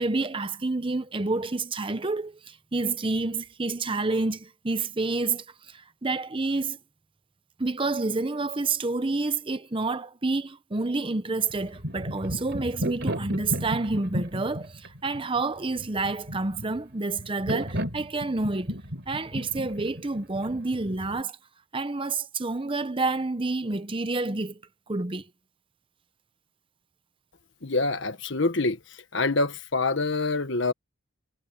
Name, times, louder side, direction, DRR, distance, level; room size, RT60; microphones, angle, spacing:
voice 1, 0.0-6.8 7.6-18.8 19.1-21.4 21.7-24.6 24.9-25.3, right 3 dB, 25° right, 0.8 m, -29 dB
sound 1, 11.5-21.2, equal, 55° right, 4.2 m, -33 dB
voice 2, 27.6-28.8 29.1-30.7, left 3 dB, 60° left, 1.3 m, -25 dB
head